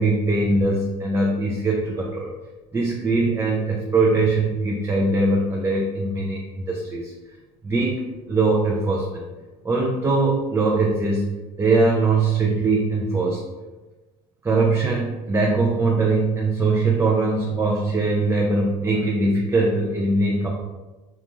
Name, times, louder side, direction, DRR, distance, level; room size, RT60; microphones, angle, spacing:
voice 1, 0.0-2.3 2.7-7.1 7.6-8.0 8.3-9.3 9.6-11.2 11.6-13.5 14.4-20.5, right 3 dB, 15° right, -2 dB, 0.4 m, -21 dB
2.4 x 2.2 x 2.9 m, 1.2 s
supercardioid pair, 80°, 19 cm